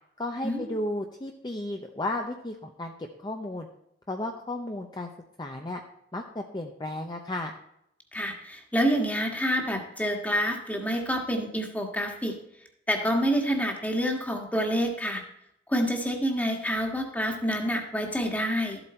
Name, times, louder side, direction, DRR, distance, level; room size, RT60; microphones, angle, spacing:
voice 1, 0.2-3.7 4.1-5.1 5.4-5.8 6.1-7.5, left 1 dB, 25° left, 3 dB, 0.8 m, -34 dB
voice 2, 8.1-12.3 12.9-15.2 15.7-18.8, equal, 10° left, 3 dB, 1.6 m, -27 dB
13.5 x 8.0 x 4.4 m, 0.77 s
head